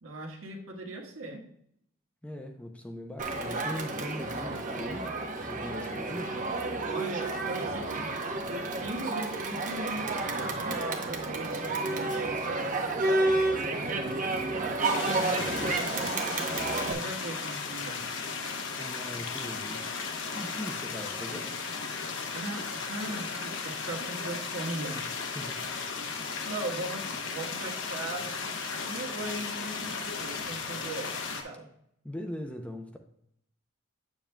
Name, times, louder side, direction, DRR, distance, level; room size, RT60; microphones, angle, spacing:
voice 1, 0.0-1.4 6.9-8.1 8.5-12.8 13.5-16.2 16.9-18.1 22.3-25.1 26.4-31.7, right 1 dB, 75° right, -1 dB, 1.5 m, -39 dB
voice 2, 2.2-6.4 18.8-19.9 20.3-21.6 25.3-25.7 32.0-33.0, left 1 dB, 5° left, 5 dB, 0.5 m, -40 dB
Crowd, 3.2-16.9, right 2 dB, 40° right, 0.9 m, -31 dB
sound 1, 14.8-31.4, left 5 dB, 60° left, 0.9 m, -35 dB
8.7 x 7.0 x 2.2 m, 0.73 s
head